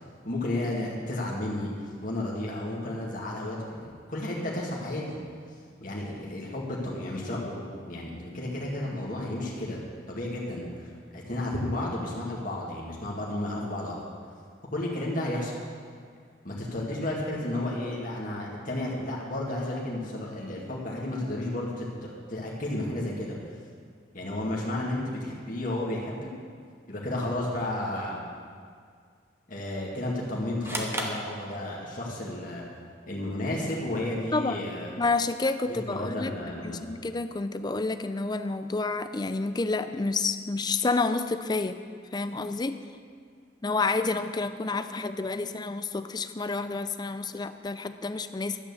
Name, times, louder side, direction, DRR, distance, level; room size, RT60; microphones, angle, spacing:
voice 1, 0.2-5.2 5.8-9.8 10.1-14.0 14.7-15.5 16.4-23.3 24.1-26.3 26.9-28.2 29.5-32.6 33.1-35.0 35.7-36.8, left 1 dB, 45° left, -4 dB, 2.0 m, -32 dB
sound 1, 30.6-32.1, right 1 dB, 15° right, 1.1 m, -35 dB
voice 2, 34.3-34.7 35.0-36.3 36.6-41.8 42.1-42.8 43.6-48.6, left 3 dB, 20° left, 10 dB, 0.4 m, -29 dB
12.0 x 8.8 x 7.0 m, 2.1 s
head